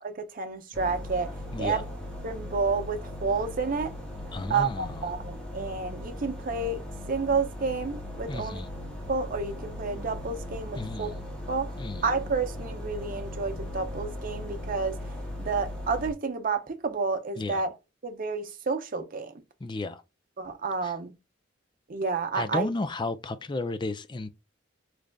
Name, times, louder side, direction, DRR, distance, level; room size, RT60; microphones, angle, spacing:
voice 1, 0.0-1.3 1.6-1.8 2.2-3.9 4.5-6.8 7.1-8.6 9.1-11.1 11.5-11.7 12.0-15.0 15.4-17.8 18.0-19.3 20.4-21.1 21.9-22.7, right 4 dB, 45° right, 0.6 m, -30 dB
sound 1, 0.7-16.1, left 1 dB, 5° left, 1.3 m, -38 dB
voice 2, 1.5-1.8 4.3-5.1 8.3-8.7 10.7-11.2 11.8-12.0 17.4-17.6 19.6-20.0 20.8-20.9 22.3-24.3, left 2 dB, 25° left, 0.4 m, -33 dB
3.8 x 3.2 x 2.2 m
head